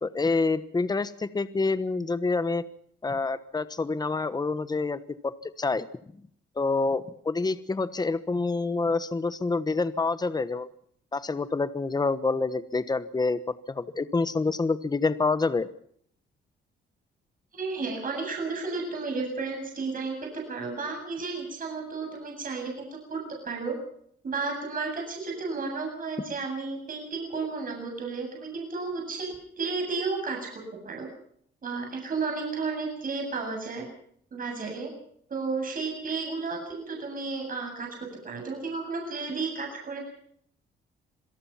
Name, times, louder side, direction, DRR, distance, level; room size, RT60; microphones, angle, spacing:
voice 1, 0.0-2.6 3.0-5.8 6.6-10.7 11.1-13.4 13.7-15.7, left 3 dB, 20° left, 13 dB, 1.2 m, -27 dB
voice 2, 17.5-23.2 23.4-23.7 24.2-31.1 31.6-33.8 34.3-34.9 35.3-37.9 38.2-40.1, right 4 dB, 45° right, 1 dB, 7.9 m, -33 dB
26.0 x 18.0 x 5.8 m, 0.65 s
cardioid pair, 90°, 20 cm